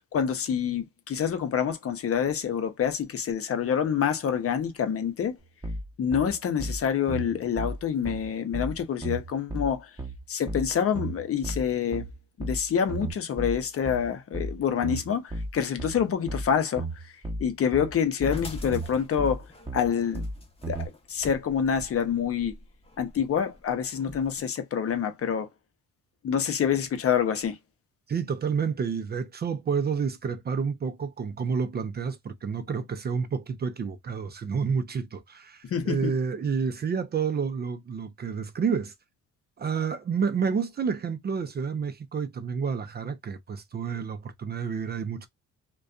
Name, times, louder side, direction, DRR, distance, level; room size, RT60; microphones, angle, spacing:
voice 1, 0.1-5.4 6.0-9.9 10.3-12.1 12.4-16.9 17.4-19.4 19.7-20.2 20.7-22.5 23.0-25.5 26.2-27.6 35.7-36.1, left 8 dB, 50° left, 0.7 m, -27 dB
sound 1, 5.6-20.9, right 1 dB, 15° right, 0.8 m, -34 dB
sound 2, 18.3-24.4, left 2 dB, 20° left, 0.8 m, -44 dB
voice 2, 28.1-38.9 39.6-45.3, right 6 dB, 35° right, 0.4 m, -29 dB
2.5 x 2.2 x 2.3 m
cardioid pair, 90°, 30 cm